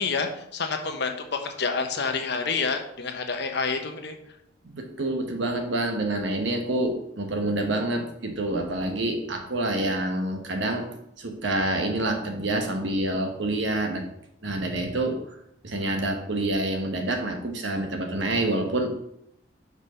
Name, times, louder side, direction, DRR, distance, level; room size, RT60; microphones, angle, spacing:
voice 1, 0.0-4.2, left 4 dB, 60° left, 5 dB, 1.0 m, -28 dB
voice 2, 4.7-10.9 11.2-14.0 14.4-15.2 15.6-18.9, right 1 dB, 65° right, 4 dB, 1.2 m, -27 dB
5.6 x 4.7 x 5.6 m, 0.75 s
head